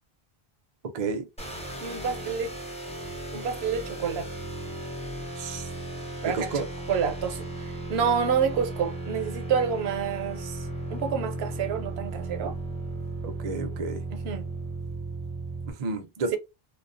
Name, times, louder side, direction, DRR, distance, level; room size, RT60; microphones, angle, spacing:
voice 1, 0.9-1.3 5.4-5.7 6.3-6.7 13.2-14.0 15.7-16.4, right 4 dB, 50° right, 0.5 m, -31 dB
sound 1, 1.4-15.7, right 2 dB, 10° left, 0.5 m, -36 dB
voice 2, 1.8-2.6 3.3-4.3 6.2-12.5 14.1-14.5, right 7 dB, 85° right, 0.8 m, -29 dB
2.3 x 2.2 x 2.4 m
omnidirectional pair, 1.0 m